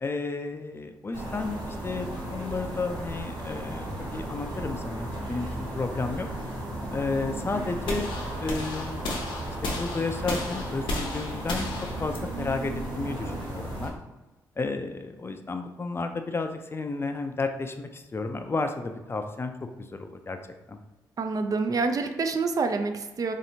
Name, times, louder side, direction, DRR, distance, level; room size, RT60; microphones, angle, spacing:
voice 1, 0.0-6.3 6.9-9.0 9.6-11.7 12.0-13.9 14.6-19.5 19.8-20.4 20.7-20.8, left 3 dB, 30° left, 6 dB, 0.4 m, -32 dB
sound 1, 1.1-13.9, right 1 dB, 70° right, 1.1 m, -35 dB
sound 2, 7.9-13.9, left 2 dB, 75° left, 0.7 m, -35 dB
voice 2, 21.2-23.3, right 4 dB, 45° right, 6 dB, 0.4 m, -27 dB
3.1 x 2.8 x 2.7 m, 1.1 s
supercardioid pair, 50°, 8 cm